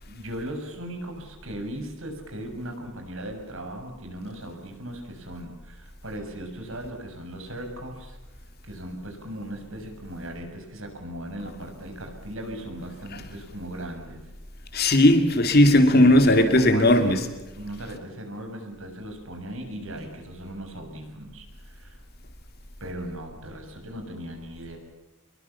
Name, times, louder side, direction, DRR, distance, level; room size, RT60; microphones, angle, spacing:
voice 1, 0.0-8.2 8.6-14.2 15.9-17.2 17.5-22.0 22.8-24.8, right 1 dB, 65° right, 6.7 m, -37 dB
voice 2, 14.7-17.3, left 1 dB, 45° left, 2.5 m, -17 dB
27.0 x 22.0 x 7.2 m
head